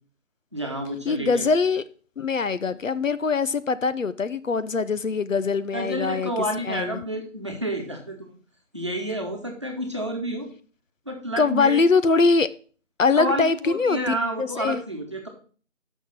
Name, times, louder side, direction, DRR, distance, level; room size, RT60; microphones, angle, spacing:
voice 1, 0.5-1.5 2.6-2.7 5.7-8.3 8.7-10.5 11.1-11.8 13.2-15.3, right 1 dB, 25° right, 1.2 m, -29 dB
voice 2, 1.1-1.8 2.2-6.3 6.7-7.0 11.4-12.5 13.0-14.8, left 4 dB, 80° left, 0.8 m, -22 dB
6.2 x 6.1 x 7.4 m
figure-of-eight pair, 175°, 38 cm